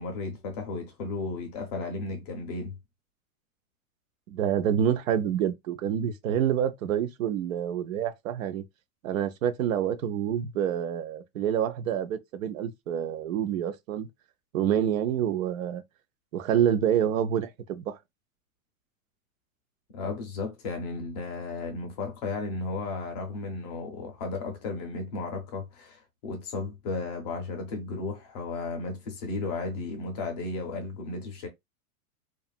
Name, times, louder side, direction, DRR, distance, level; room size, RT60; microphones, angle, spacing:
voice 1, 0.0-2.8 19.9-31.5, left 3 dB, 30° left, 0.5 m, -34 dB
voice 2, 4.3-8.6 9.0-14.1 14.5-15.8 16.3-18.0, right 9 dB, 65° right, 0.5 m, -27 dB
2.7 x 2.4 x 2.3 m
supercardioid pair, 165°, 44 cm